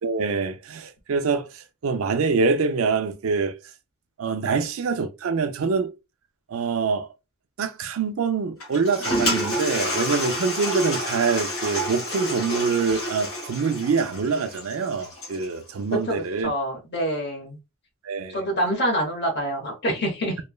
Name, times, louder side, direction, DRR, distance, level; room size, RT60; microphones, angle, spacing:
voice 1, 0.0-3.6 4.2-5.9 6.5-7.1 7.6-16.5 18.0-18.4, right 5 dB, 70° right, 0.4 m, -25 dB
Toilet flush, 8.6-15.5, equal, 75° left, 1.6 m, -29 dB
voice 2, 16.1-17.6 18.3-20.4, equal, 50° left, 0.9 m, -26 dB
3.1 x 2.1 x 2.2 m
head